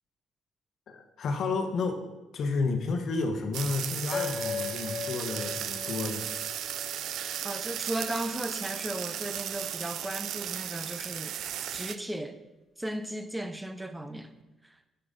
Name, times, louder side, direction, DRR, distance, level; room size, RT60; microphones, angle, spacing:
voice 1, 0.9-6.3, left 3 dB, 65° left, 1.2 m, -31 dB
sound 1, 3.5-12.0, right 10 dB, 75° right, 0.4 m, -36 dB
sound 2, 4.1-8.8, left 5 dB, 35° left, 0.8 m, -39 dB
voice 2, 7.4-11.3 11.7-12.4 12.8-14.3, right 1 dB, 10° right, 0.7 m, -35 dB
9.6 x 6.8 x 3.9 m
cardioid pair, 90°, 0 cm